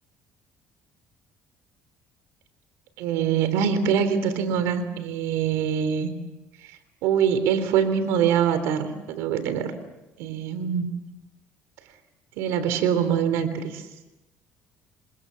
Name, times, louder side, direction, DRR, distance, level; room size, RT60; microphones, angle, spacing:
voice 1, 3.0-6.1 7.0-9.7 10.2-10.9 12.4-13.8, right 8 dB, 90° right, 11 dB, 3.5 m, -24 dB
28.5 x 25.5 x 7.1 m, 1.0 s
cardioid pair, 115°, 5 cm